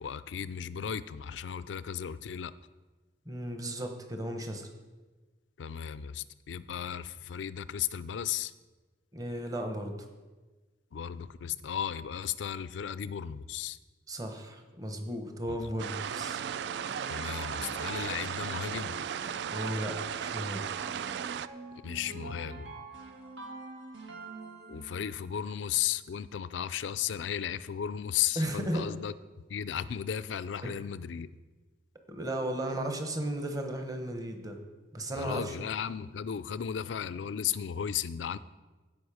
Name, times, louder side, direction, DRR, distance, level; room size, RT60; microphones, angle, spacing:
voice 1, 0.0-2.5 5.6-8.5 10.9-13.8 15.5-15.7 17.1-19.0 21.7-22.9 24.7-29.1 29.5-31.3 35.2-38.4, left 9 dB, 80° left, 16 dB, 0.4 m, -35 dB
voice 2, 3.3-4.7 9.1-9.9 14.1-16.4 19.5-20.6 28.4-28.9 30.6-30.8 32.1-34.6 34.9-35.6, right 1 dB, 20° right, 5 dB, 1.0 m, -35 dB
sound 1, 15.8-21.5, right 8 dB, 65° right, 0.3 m, -36 dB
sound 2, 16.1-25.3, right 3 dB, 85° right, 1.9 m, -45 dB
16.0 x 5.3 x 4.9 m, 1.3 s
head